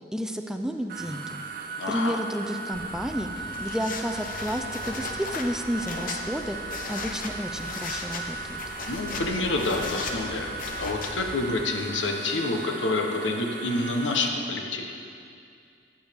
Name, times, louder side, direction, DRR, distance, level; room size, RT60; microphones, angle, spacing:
voice 1, 0.1-1.4 1.9-6.6 6.9-8.6, equal, 5° right, 5 dB, 0.4 m, -31 dB
sound 1, 0.9-14.3, right 3 dB, 55° right, 0.6 m, -37 dB
voice 2, 1.8-2.2 8.8-10.5 10.8-14.9, left 2 dB, 85° left, 3 dB, 0.9 m, -28 dB
sound 2, 2.7-11.3, left 3 dB, 50° left, 0.8 m, -37 dB
12.5 x 7.9 x 3.5 m, 2.5 s
head